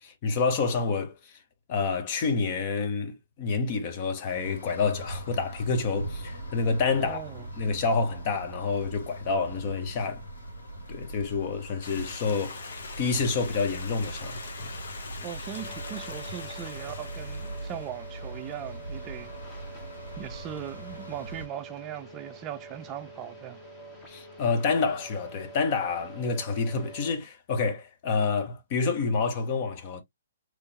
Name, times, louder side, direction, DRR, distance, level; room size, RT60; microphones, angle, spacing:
voice 1, 0.0-1.4 1.7-7.2 7.6-10.2 10.9-14.8 24.1-30.0, left 4 dB, 40° left, 1.0 m, -28 dB
sound 1, 4.3-21.5, right 1 dB, 85° left, 2.0 m, -40 dB
voice 2, 7.0-7.5 15.2-19.3 20.2-23.6, right 11 dB, 25° right, 0.4 m, -39 dB
Stream, 11.8-17.9, left 4 dB, 65° left, 1.0 m, -42 dB
sound 2, 15.5-27.1, right 3 dB, 15° left, 1.1 m, -46 dB
3.5 x 3.1 x 2.9 m
figure-of-eight pair, 130°, 0 cm